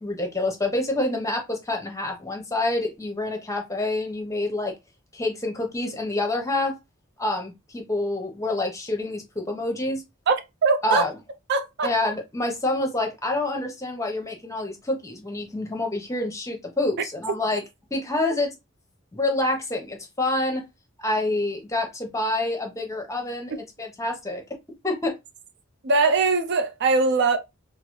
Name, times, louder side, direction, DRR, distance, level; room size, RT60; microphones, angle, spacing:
voice 1, 0.0-4.7 5.1-6.8 7.2-10.0 10.8-11.1 11.8-17.6 17.9-18.5 19.1-20.6 21.0-23.5 23.8-24.4 24.8-25.2, left 2 dB, 15° left, 0.8 m, -27 dB
voice 2, 10.6-11.1 11.5-11.9 25.8-27.4, right 4 dB, 55° right, 0.4 m, -21 dB
3.7 x 2.0 x 3.1 m
head